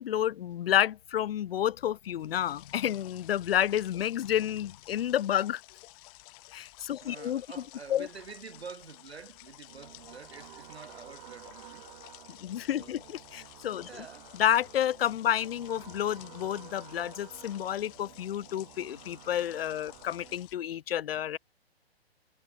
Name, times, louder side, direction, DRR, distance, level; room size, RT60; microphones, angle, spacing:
voice 1, 0.0-5.6 6.5-7.5 7.9-8.1 12.3-13.9 14.4-21.4, left 11 dB, 65° left, 0.5 m, -30 dB
sound 1, 2.2-20.5, left 26 dB, 35° left, 3.3 m, -53 dB
voice 2, 7.0-11.9 12.8-13.1 13.8-14.3, right 5 dB, 75° right, 3.9 m, -47 dB
sound 2, 9.7-20.3, right 15 dB, 45° right, 3.4 m, -52 dB
figure-of-eight pair, 130°, 32 cm